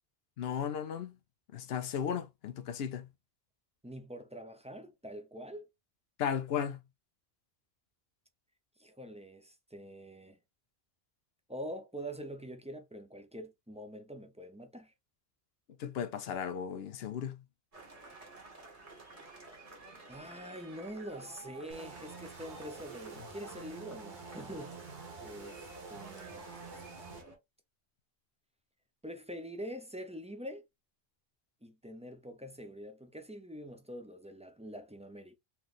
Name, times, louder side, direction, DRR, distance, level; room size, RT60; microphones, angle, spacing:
voice 1, 0.4-1.2 1.5-3.1 6.2-6.8 15.8-17.4, left 8 dB, 75° left, 0.9 m, -35 dB
voice 2, 3.8-5.7 8.8-10.4 11.5-14.9 20.1-24.8 25.2-25.6 25.9-26.5 26.7-26.8 29.0-30.6 31.6-35.4, equal, 10° right, 0.6 m, -45 dB
sound 1, 17.7-27.4, right 3 dB, 35° right, 1.7 m, -52 dB
sound 2, 21.7-27.2, right 4 dB, 50° right, 1.1 m, -48 dB
4.5 x 3.2 x 2.5 m
omnidirectional pair, 1.0 m